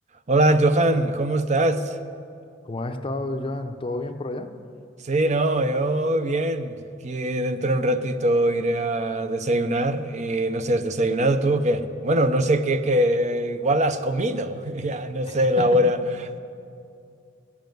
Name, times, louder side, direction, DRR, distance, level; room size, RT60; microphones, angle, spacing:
voice 1, 0.3-2.0 5.0-6.8 7.0-16.0, right 1 dB, 40° right, 10 dB, 0.6 m, -22 dB
voice 2, 2.7-4.5 15.2-15.7, left 2 dB, 30° left, 7 dB, 0.6 m, -30 dB
15.0 x 7.2 x 9.2 m, 2.4 s
head